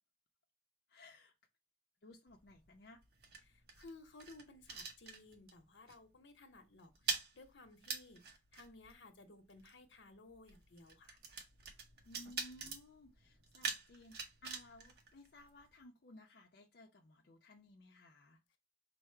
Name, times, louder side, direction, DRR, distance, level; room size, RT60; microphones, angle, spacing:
voice 1, 0.9-1.3 2.0-3.0 12.1-18.4, left 2 dB, 60° left, 0.5 m, -59 dB
sound 1, 2.3-5.6 5.9-6.2 6.4-15.8, right 5 dB, 60° right, 0.8 m, -46 dB
voice 2, 3.4-8.2 8.5-11.2, left 2 dB, 85° left, 0.8 m, -58 dB
4.6 x 2.1 x 4.3 m
head